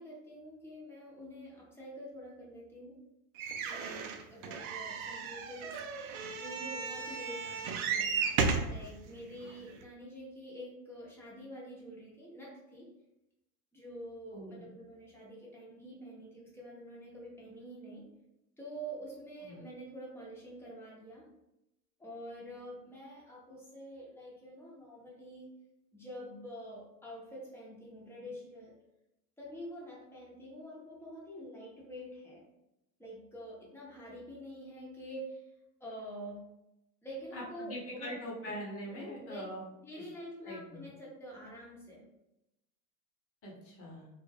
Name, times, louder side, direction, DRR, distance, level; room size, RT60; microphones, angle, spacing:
voice 1, 0.0-3.0 3.6-5.7 6.3-8.1 8.7-12.9 13.7-18.0 18.6-21.2 22.0-25.5 25.9-28.7 29.4-32.5 33.0-35.5 35.8-36.4 37.0-38.5 38.9-39.5 39.8-42.0, equal, 5° left, -5 dB, 0.8 m, -47 dB
sound 1, 3.4-8.8 9.5-9.6 9.8-9.9, right 5 dB, 70° right, 0.5 m, -34 dB
voice 2, 14.3-14.6 19.4-19.6 37.3-39.6 40.4-40.8 43.4-44.1, equal, 30° left, -4 dB, 0.9 m, -43 dB
2.3 x 2.0 x 3.3 m, 0.89 s
hypercardioid pair, 100°, 44 cm